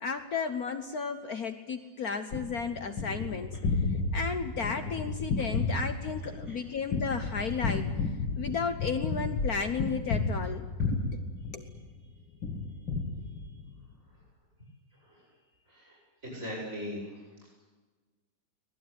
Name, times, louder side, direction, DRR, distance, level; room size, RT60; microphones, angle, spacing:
voice 1, 0.0-3.5 4.1-7.9 8.4-10.7 11.5-11.7, left 5 dB, 55° left, 8 dB, 1.4 m, -33 dB
Gunshot gunfire, 2.3-12.0 12.4-13.8, left 3 dB, 75° left, 2.4 m, -32 dB
voice 2, 16.2-17.0, equal, 40° right, -3 dB, 8.6 m, -39 dB
24.0 x 19.0 x 9.6 m, 1.3 s
omnidirectional pair, 2.1 m